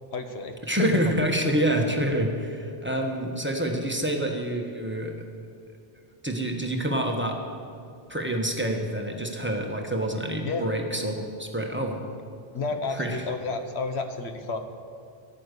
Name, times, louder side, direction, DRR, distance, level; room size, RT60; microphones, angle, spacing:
voice 1, 0.1-0.6 10.4-10.6 12.5-14.6, left 4 dB, 70° left, 7 dB, 1.2 m, -31 dB
voice 2, 0.7-5.2 6.2-7.4 8.1-12.0 12.9-13.2, right 1 dB, 10° right, 2 dB, 1.1 m, -27 dB
12.5 x 8.6 x 6.7 m, 2.5 s
omnidirectional pair, 1.2 m